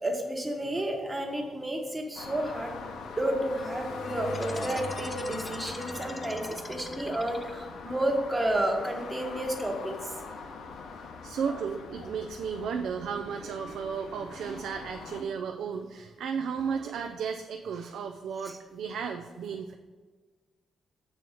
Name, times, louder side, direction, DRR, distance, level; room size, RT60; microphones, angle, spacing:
voice 1, 0.0-2.7 3.2-10.1 18.4-18.6, right 1 dB, 15° right, 2 dB, 1.1 m, -31 dB
sound 1, 2.1-15.2, left 4 dB, 80° left, 0.9 m, -41 dB
sound 2, 4.3-7.8, left 2 dB, 10° left, 0.6 m, -44 dB
voice 2, 11.2-19.7, right 6 dB, 80° right, 4 dB, 0.5 m, -34 dB
7.7 x 4.6 x 7.1 m, 1.4 s
wide cardioid pair, 170°, 0 cm